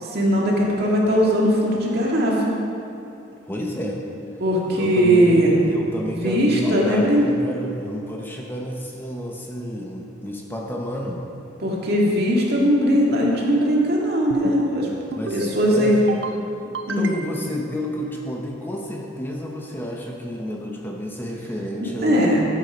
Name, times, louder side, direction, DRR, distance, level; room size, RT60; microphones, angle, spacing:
voice 1, 0.0-2.6 4.4-5.6 6.1-7.2 11.6-14.9 15.3-16.1 16.9-17.1 21.8-22.4, equal, 55° right, -3 dB, 2.2 m, -19 dB
voice 2, 3.5-4.0 4.7-11.2 15.2-16.0 17.0-22.4, equal, 10° left, -1 dB, 0.8 m, -30 dB
sound 1, 14.3-14.8 15.1-15.6 15.9-16.4 16.7-17.5, right 3 dB, 75° right, 0.7 m, -32 dB
13.0 x 8.4 x 5.1 m, 2.7 s
head